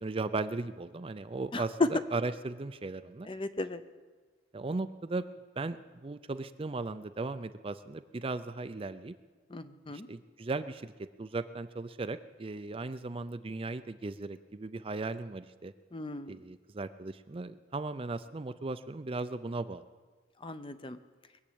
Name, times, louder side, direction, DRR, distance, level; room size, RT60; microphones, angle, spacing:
voice 1, 0.0-3.3 4.5-5.3 5.6-9.2 9.9-15.7 16.3-19.8, right 3 dB, 30° right, 11 dB, 0.4 m, -37 dB
voice 2, 3.3-3.8 9.5-10.1 15.9-16.3 20.4-21.0, left 2 dB, 25° left, 11 dB, 0.6 m, -39 dB
22.0 x 7.5 x 8.6 m, 1.4 s
head